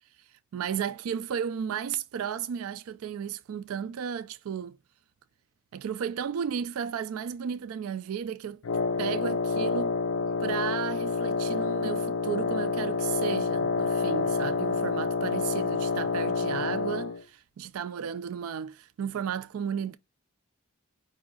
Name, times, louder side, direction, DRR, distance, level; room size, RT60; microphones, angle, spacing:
voice 1, 0.5-4.8 5.7-8.6 9.0-9.9 10.4-20.0, right 8 dB, 80° right, 0.4 m, -34 dB
Wind instrument woodwind instrument, 8.6-17.2, left 4 dB, 75° left, 0.5 m, -28 dB
4.9 x 2.6 x 3.7 m
head